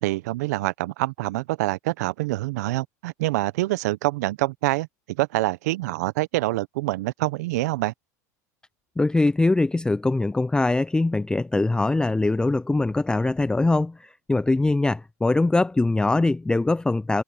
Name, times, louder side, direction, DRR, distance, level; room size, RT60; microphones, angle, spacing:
voice 1, 0.0-7.9, right 19 dB, 75° right, 1.0 m, -26 dB
voice 2, 9.0-17.2, left 2 dB, 10° left, 0.6 m, -22 dB
hypercardioid pair, 90°, 9 cm